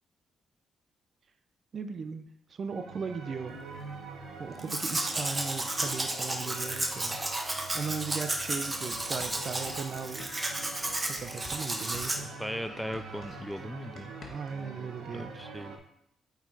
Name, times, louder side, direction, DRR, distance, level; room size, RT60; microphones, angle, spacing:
voice 1, 1.7-3.6 4.4-7.2 7.7-10.3 11.0-12.3 14.3-15.3, right 5 dB, 55° right, 9 dB, 0.7 m, -37 dB
sound 1, 2.6-15.8, right 4 dB, 80° right, 1.3 m, -44 dB
Domestic sounds home sounds, 4.6-12.2, right 2 dB, 25° right, 1.1 m, -33 dB
sound 2, 7.4-7.5 7.8-11.6 11.9-14.6, left 3 dB, 55° left, 1.6 m, -50 dB
voice 2, 12.4-14.1 15.1-15.8, equal, ahead, 10 dB, 0.5 m, -38 dB
8.6 x 4.2 x 4.1 m, 0.75 s
supercardioid pair, 55°, 0 cm